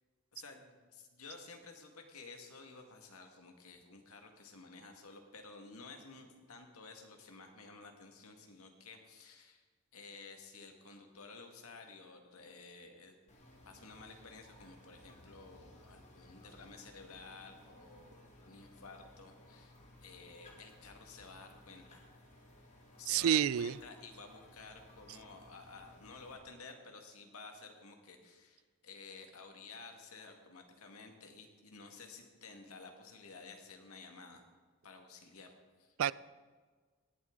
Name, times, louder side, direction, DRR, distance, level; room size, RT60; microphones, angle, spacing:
voice 1, 0.3-9.7 9.9-13.1 13.6-22.0 23.0-34.4 34.8-36.0, left 4 dB, 80° left, 4 dB, 2.0 m, -53 dB
sound 1, 13.3-26.4, left 1 dB, 30° left, 2.4 m, -59 dB
voice 2, 23.1-23.7 36.0-36.1, right 9 dB, 70° right, 20 dB, 0.3 m, -28 dB
18.0 x 11.5 x 3.9 m, 1.5 s
head